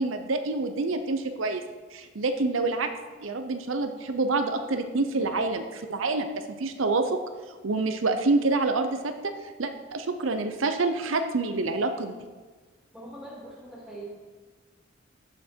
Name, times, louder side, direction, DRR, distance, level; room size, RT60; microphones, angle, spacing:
voice 1, 0.0-1.6 1.9-2.9 3.2-7.2 7.5-12.2, right 3 dB, 90° right, 7 dB, 0.7 m, -27 dB
voice 2, 12.9-14.1, right 1 dB, ahead, -5 dB, 2.8 m, -42 dB
14.0 x 5.9 x 4.5 m, 1.4 s
head